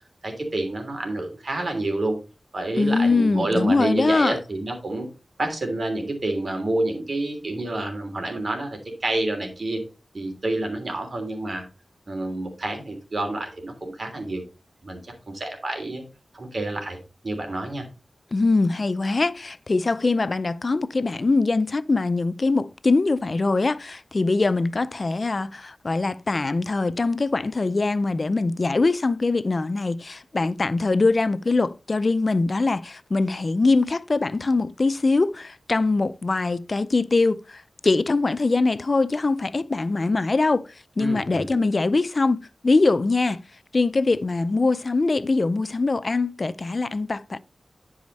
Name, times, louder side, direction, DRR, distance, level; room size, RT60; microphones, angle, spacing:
voice 1, 0.2-2.2 2.5-5.1 5.4-9.8 10.1-11.7 12.1-14.4 14.8-16.0 16.3-17.0 17.2-17.9 41.0-41.6, right 2 dB, 60° right, 3.2 m, -28 dB
voice 2, 2.8-4.4 18.3-40.6 41.0-43.4 43.7-47.4, left 3 dB, 50° left, 0.5 m, -22 dB
10.5 x 4.9 x 4.0 m
cardioid pair, 50°, 0 cm